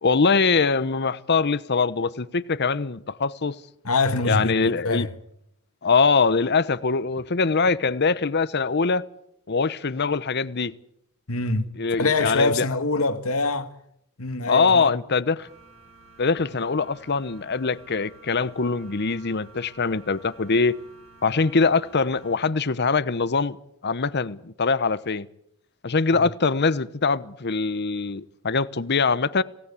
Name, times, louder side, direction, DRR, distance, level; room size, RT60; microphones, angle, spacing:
voice 1, 0.0-3.6 4.2-5.1 5.8-9.0 9.5-10.7 11.8-12.7 14.5-15.5 16.2-20.7 21.2-23.6 23.8-25.3 25.8-29.4, left 4 dB, 55° left, 0.9 m, -23 dB
voice 2, 3.8-5.1 11.3-13.7 14.2-14.9 26.2-26.3, left 3 dB, 85° left, 1.8 m, -24 dB
sound 1, 15.4-22.5, right 2 dB, 70° right, 6.9 m, -51 dB
26.5 x 17.5 x 8.4 m
head